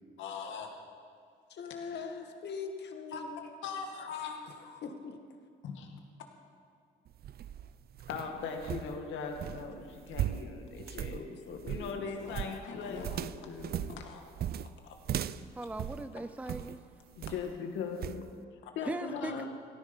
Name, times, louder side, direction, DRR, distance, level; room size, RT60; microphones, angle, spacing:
voice 1, 0.2-0.7 1.7-2.0 3.1-3.2 3.6-4.4 5.6-5.9 8.1-11.2 11.7-13.2 14.0-14.2 14.8-15.0 17.2-18.2 18.8-19.5, left 5 dB, 80° left, 3 dB, 2.1 m, -39 dB
voice 2, 1.5-3.5 4.6-5.2 10.9-12.3 12.7-14.0, left 5 dB, 60° left, 5 dB, 1.8 m, -43 dB
sound 1, 7.1-16.8 17.2-17.6 18.0-18.2, right 10 dB, 55° right, 0.5 m, -38 dB
voice 3, 15.6-16.8 18.9-19.4, right 2 dB, 5° right, 11 dB, 0.5 m, -39 dB
17.0 x 13.0 x 5.4 m, 2.2 s
cardioid pair, 80°, 19 cm